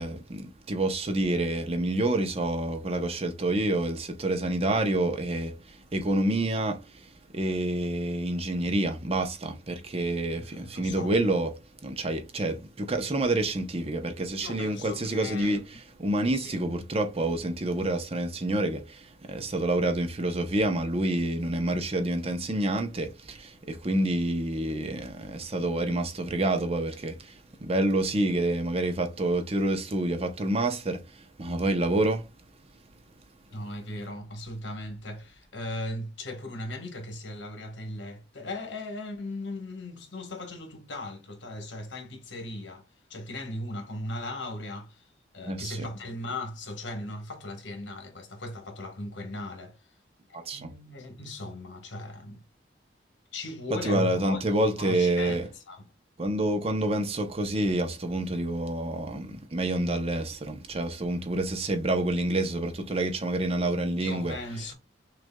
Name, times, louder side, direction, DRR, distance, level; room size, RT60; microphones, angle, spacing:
voice 1, 0.0-11.5 11.8-32.2 45.5-45.9 50.3-50.7 53.8-55.5 56.2-64.4, right 1 dB, 30° right, 0.7 m, -28 dB
voice 2, 10.3-11.1 14.4-15.6 16.3-16.6 33.5-42.8 43.1-45.1 45.3-49.8 50.3-52.4 53.3-55.4 55.7-55.9 64.0-64.7, left 1 dB, 80° left, 1.2 m, -38 dB
6.1 x 2.5 x 2.2 m
head